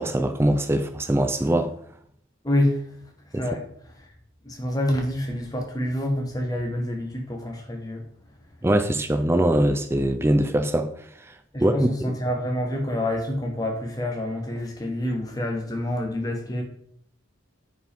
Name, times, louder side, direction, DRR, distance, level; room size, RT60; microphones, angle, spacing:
voice 1, 0.0-1.7 3.3-3.5 8.6-10.9 11.6-12.2, right 1 dB, 10° right, 0.4 m, -22 dB
voice 2, 2.4-2.8 3.4-3.6 4.4-8.0 11.5-16.6, left 1 dB, 20° left, 1.2 m, -27 dB
9.0 x 5.1 x 3.6 m
head